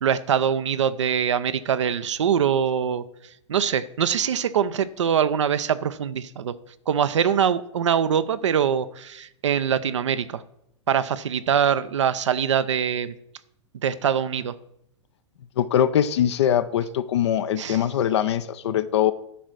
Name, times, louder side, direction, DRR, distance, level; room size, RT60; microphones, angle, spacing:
voice 1, 0.0-3.0 3.5-6.5 6.9-10.4 10.9-13.1 13.8-14.5 17.6-17.8, right 8 dB, 70° right, 13 dB, 0.5 m, -23 dB
voice 2, 15.6-19.1, left 10 dB, 60° left, 12 dB, 0.5 m, -22 dB
10.5 x 4.0 x 6.2 m, 0.74 s
figure-of-eight pair, 100°, 16 cm